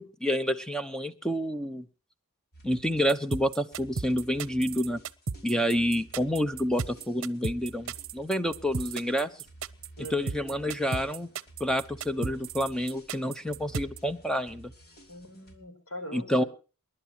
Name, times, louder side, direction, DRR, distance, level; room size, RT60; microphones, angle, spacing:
voice 1, 0.0-1.8 2.6-5.0 5.4-9.3 10.1-11.3 11.6-14.7 16.1-16.4, equal, 5° left, 9 dB, 1.0 m, -28 dB
sound 1, 2.5-15.6, right 1 dB, 45° left, 3.5 m, -53 dB
sound 2, 3.1-14.0, right 5 dB, 65° right, 0.8 m, -34 dB
voice 2, 10.0-10.3 15.1-16.5, equal, 70° left, 6 dB, 4.9 m, -41 dB
28.5 x 11.5 x 3.0 m, 0.35 s
head